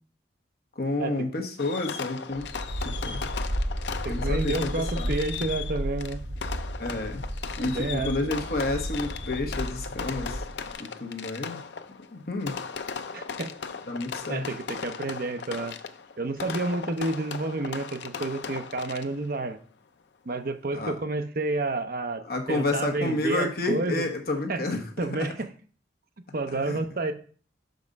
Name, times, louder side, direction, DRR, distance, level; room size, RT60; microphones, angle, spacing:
voice 1, 0.8-2.5 2.8-3.2 4.1-4.7 4.9-5.1 6.8-7.2 7.6-10.4 10.8-11.6 12.1-12.6 13.9-14.5 20.7-21.0 22.2-25.3 26.6-26.8, left 2 dB, 55° left, 3 dB, 1.2 m, -30 dB
Fireworks, 1.6-19.4, left 6 dB, 75° left, 0.5 m, -37 dB
sound 1, 2.3-10.7, equal, 80° right, 2.3 m, -33 dB
voice 2, 4.0-6.2 7.6-8.1 13.1-13.5 14.3-15.8 16.2-19.6 20.2-22.2 22.5-24.1 24.5-24.6 25.0-25.5 26.3-27.1, right 2 dB, 55° right, 8 dB, 0.7 m, -30 dB
6.3 x 5.3 x 5.3 m, 0.43 s
head